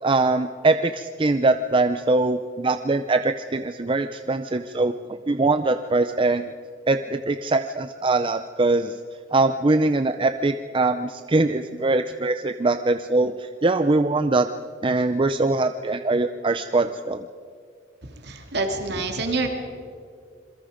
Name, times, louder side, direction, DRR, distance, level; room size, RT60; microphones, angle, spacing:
voice 1, 0.0-4.9 5.3-6.5 6.9-9.0 9.3-14.5 14.8-17.2, right 2 dB, 25° right, 9 dB, 0.5 m, -22 dB
voice 2, 18.2-19.5, right 3 dB, 60° right, 4 dB, 2.8 m, -26 dB
27.0 x 22.5 x 5.1 m, 2.2 s
head